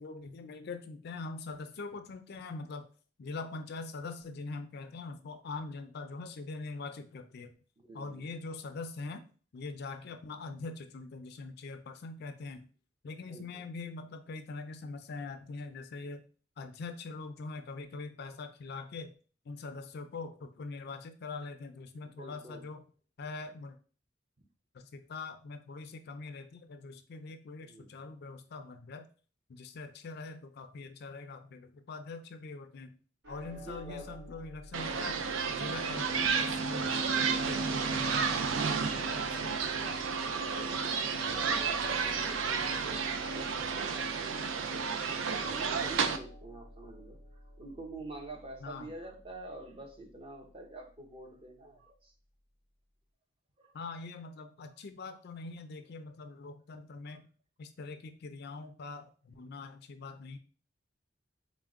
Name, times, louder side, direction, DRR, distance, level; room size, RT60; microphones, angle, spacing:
voice 1, 0.0-2.9 3.2-7.5 7.9-9.2 9.5-12.7 13.0-16.2 16.6-19.1 19.5-22.8 23.2-23.8 24.7-29.1 29.5-32.9 33.3-35.2 35.5-40.0 41.0-41.3 48.6-48.9 53.7-57.2 57.6-60.4, left 3 dB, 55° left, 8 dB, 0.4 m, -43 dB
voice 2, 7.8-8.3 13.3-13.6 22.2-22.6 27.6-28.1 33.5-34.1 40.5-44.3 44.6-52.1 53.6-53.8 56.0-56.2 57.0-57.2, right 2 dB, 30° right, 3 dB, 0.7 m, -48 dB
sound 1, 33.2-51.5, equal, 65° right, 1.1 m, -52 dB
sound 2, 34.7-46.2, right 5 dB, 80° right, 0.4 m, -31 dB
4.4 x 2.1 x 3.5 m, 0.39 s
head